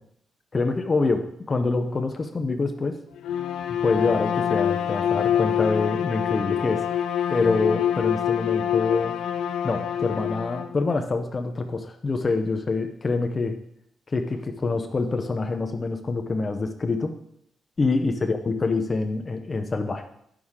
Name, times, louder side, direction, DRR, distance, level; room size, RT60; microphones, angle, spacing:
voice 1, 0.5-3.0 3.7-9.2 9.6-13.6 14.1-17.2 17.8-20.1, left 3 dB, 25° left, 6 dB, 0.6 m, -26 dB
Bowed string instrument, 3.2-10.7, left 9 dB, 80° left, 0.5 m, -25 dB
10.0 x 6.3 x 3.6 m, 0.74 s
cardioid pair, 130°, 0 cm